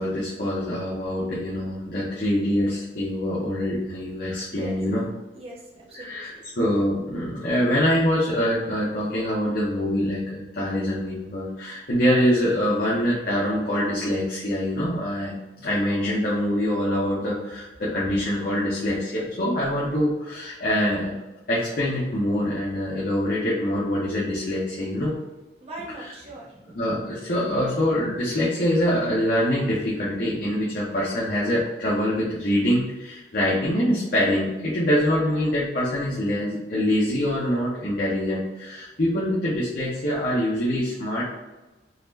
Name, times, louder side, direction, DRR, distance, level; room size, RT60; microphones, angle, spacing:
voice 1, 0.0-5.0 5.9-21.1 21.5-25.1 26.7-41.2, equal, 55° left, -7 dB, 0.9 m, -24 dB
voice 2, 4.5-4.8 5.3-6.4 25.6-26.9, right 2 dB, 35° right, -4 dB, 1.1 m, -40 dB
4.2 x 3.0 x 2.7 m, 1.1 s
head